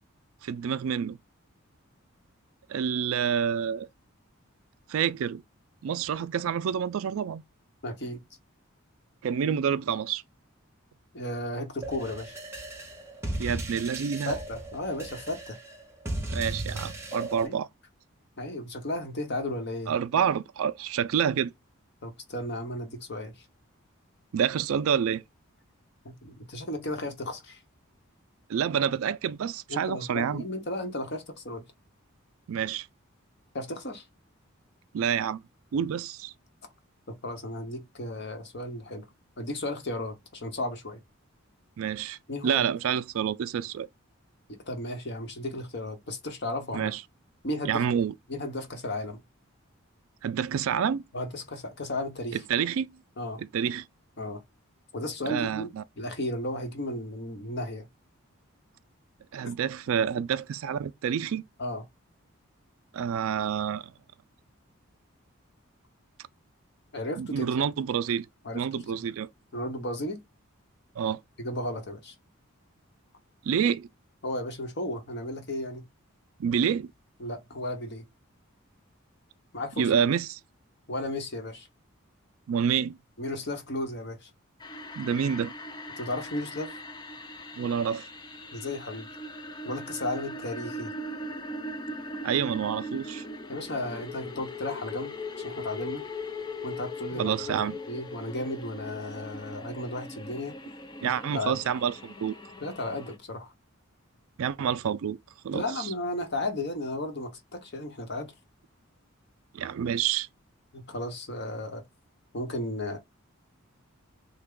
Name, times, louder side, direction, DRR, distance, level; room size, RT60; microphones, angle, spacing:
voice 1, 0.4-1.2 2.7-3.9 4.9-5.4 5.8-7.4 9.2-10.2 13.4-14.3 16.3-17.7 19.9-21.5 24.3-25.2 28.5-30.4 32.5-32.9 34.9-35.4 35.7-36.3 41.8-42.2 42.4-43.9 46.7-47.0 47.6-48.1 50.2-51.0 52.5-52.9 53.4-53.8 55.3-55.8 59.3-61.4 62.9-63.9 67.2-68.3 68.5-69.3 71.0-71.2 73.4-73.9 76.4-76.9 79.8-80.4 82.5-83.0 85.0-85.5 87.6-88.1 92.2-93.2 97.1-97.8 101.0-102.4 104.4-105.2 105.4-105.9 109.5-110.3, right 8 dB, 75° right, 0.3 m, -28 dB
voice 2, 7.8-8.2 11.1-12.3 14.3-15.6 17.4-17.6 18.4-19.9 22.0-23.3 26.0-27.6 29.7-31.6 33.5-34.0 37.1-39.1 39.4-41.0 42.3-42.6 44.5-46.9 47.4-47.8 48.3-49.2 51.1-52.4 53.2-53.4 54.2-54.4 54.9-57.9 59.4-59.5 61.6-61.8 66.9-67.5 68.4-69.0 69.5-70.2 71.4-72.1 74.2-75.8 77.2-78.0 79.5-79.9 80.9-81.7 83.2-84.3 86.0-86.8 88.5-89.1 89.7-90.9 93.5-96.0 96.6-97.6 97.9-100.6 101.2-101.6 102.6-103.5 105.5-108.3 110.7-111.8 112.3-113.0, left 1 dB, 50° left, 1.0 m, -34 dB
sound 1, 11.8-17.5, right 1 dB, 10° right, 0.8 m, -36 dB
sound 2, 84.6-103.2, left 1 dB, 20° left, 0.4 m, -40 dB
3.4 x 2.2 x 3.6 m
head